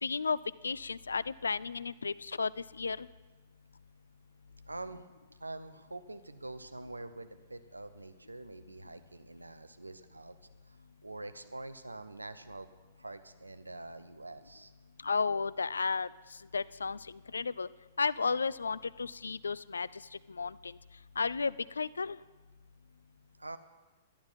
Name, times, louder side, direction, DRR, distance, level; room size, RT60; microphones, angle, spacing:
voice 1, 0.0-0.4 0.6-3.1 15.0-16.1 16.5-17.7 18.0-20.0 20.3-20.8 21.2-22.2, left 4 dB, 80° left, 19 dB, 0.3 m, -33 dB
voice 2, 4.7-5.0 5.4-10.4 10.7-12.7 13.0-14.7 23.4-23.6, right 2 dB, 90° right, 10 dB, 0.7 m, -45 dB
11.5 x 11.5 x 5.5 m, 1.3 s
figure-of-eight pair, 110°, 0 cm